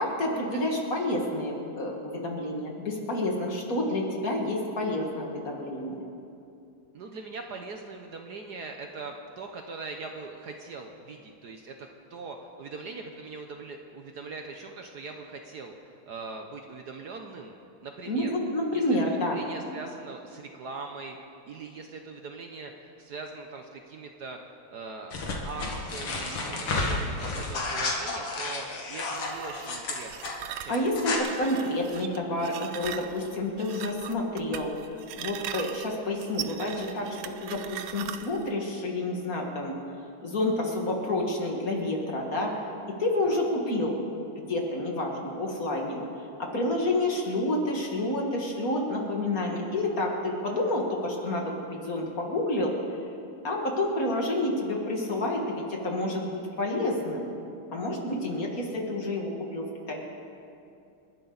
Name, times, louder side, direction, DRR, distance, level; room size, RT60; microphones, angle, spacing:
voice 1, 0.0-6.0 18.1-19.4 30.7-39.7 40.2-44.0 44.3-46.0 46.5-52.7 53.4-57.3 57.7-59.9, left 1 dB, 45° left, 0 dB, 2.2 m, -29 dB
voice 2, 6.9-15.7 16.1-17.5 17.8-18.3 18.7-21.2 21.5-22.7 23.0-24.4 24.7-25.1 25.4-30.9 43.2-43.4, right 4 dB, 60° right, 3 dB, 1.3 m, -41 dB
sound 1, 25.1-30.3 30.7-31.2, left 3 dB, 85° left, 2.7 m, -31 dB
sound 2, 29.2-38.5, right 10 dB, 80° right, 1.5 m, -40 dB
29.0 x 11.5 x 4.0 m, 2.6 s
omnidirectional pair, 2.3 m